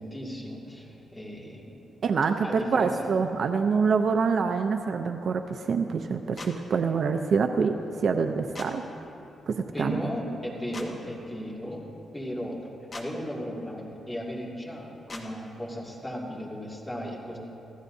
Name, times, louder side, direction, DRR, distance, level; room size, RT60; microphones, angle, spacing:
voice 1, 0.0-1.8 2.4-3.1 9.7-11.8 12.1-12.6 12.9-17.4, equal, 10° left, -4 dB, 2.3 m, -36 dB
voice 2, 2.0-8.8 9.5-10.0, right 5 dB, 50° right, 6 dB, 0.5 m, -26 dB
sound 1, 6.4-6.5 8.5-8.7 10.7-10.9 12.9-13.1 15.1-15.2, left 3 dB, 30° left, 1.3 m, -40 dB
27.0 x 15.5 x 2.7 m, 3.0 s
wide cardioid pair, 170°, 0 cm